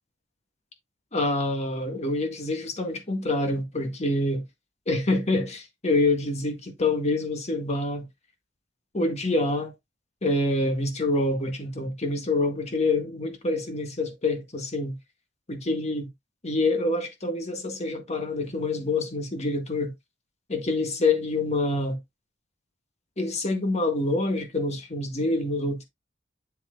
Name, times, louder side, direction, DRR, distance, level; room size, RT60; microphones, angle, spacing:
voice 1, 1.1-4.4 4.9-8.1 8.9-9.7 10.2-15.0 15.5-16.1 16.4-19.9 20.5-22.0 23.2-25.9, left 2 dB, 35° left, 1.7 m, -26 dB
7.6 x 7.2 x 2.5 m
head